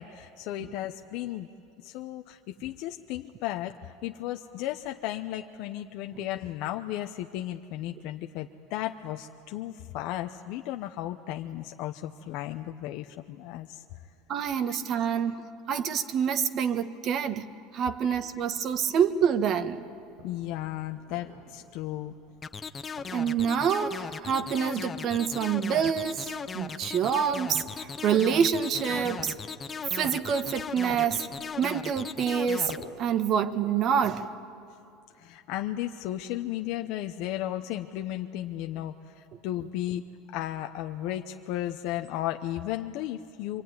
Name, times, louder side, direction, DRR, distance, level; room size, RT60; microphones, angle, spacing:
voice 1, 0.0-1.5 1.8-13.8 14.7-14.8 18.0-18.1 20.2-22.1 35.2-40.0 40.3-43.6, left 13 dB, 65° left, 0.8 m, -34 dB
voice 2, 14.3-15.4 15.7-17.4 17.7-19.8 23.1-29.3 29.9-31.3 31.6-34.3, right 7 dB, 45° right, 1.4 m, -27 dB
sound 1, 18.1-33.2, right 2 dB, 85° right, 7.9 m, -51 dB
sound 2, 22.4-32.8, left 6 dB, 25° left, 0.7 m, -37 dB
25.5 x 24.5 x 9.5 m
supercardioid pair, 125°, 0 cm